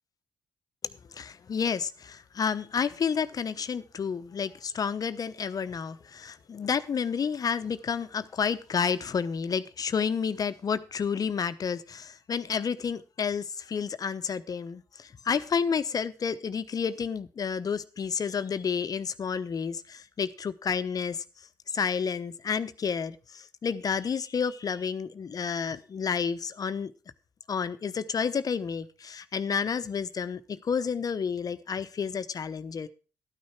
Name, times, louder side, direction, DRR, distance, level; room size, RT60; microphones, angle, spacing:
voice 1, 0.8-21.2 21.7-26.9 27.5-32.9, left 6 dB, 50° left, 12 dB, 0.9 m, -30 dB
12.5 x 9.5 x 4.5 m, 0.35 s
hypercardioid pair, 45°, 8 cm